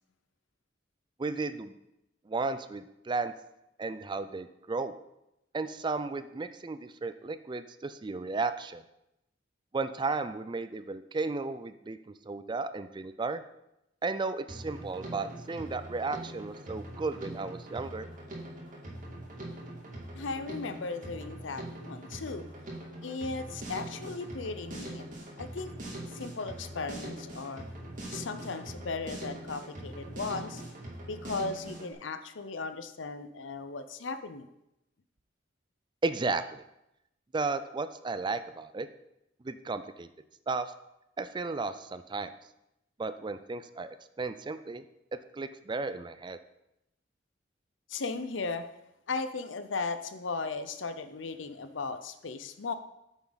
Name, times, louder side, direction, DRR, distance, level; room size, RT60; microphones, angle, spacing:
voice 1, 1.2-1.7 2.3-3.3 3.8-4.9 5.5-8.8 9.7-13.4 14.0-18.1 36.0-36.6 37.3-38.9 39.4-40.1 40.5-40.7 41.2-42.3 43.0-44.8 45.3-46.4, right 3 dB, 25° right, 11 dB, 0.4 m, -34 dB
Drum kit, 14.5-31.9, right 1 dB, 45° right, 2.2 m, -42 dB
voice 2, 20.1-22.5 23.0-25.0 25.4-25.7 26.1-27.6 28.1-30.6 31.1-34.5 47.9-48.6 49.1-52.7, left 4 dB, 85° left, 11 dB, 0.7 m, -36 dB
9.0 x 7.1 x 4.0 m, 0.87 s
head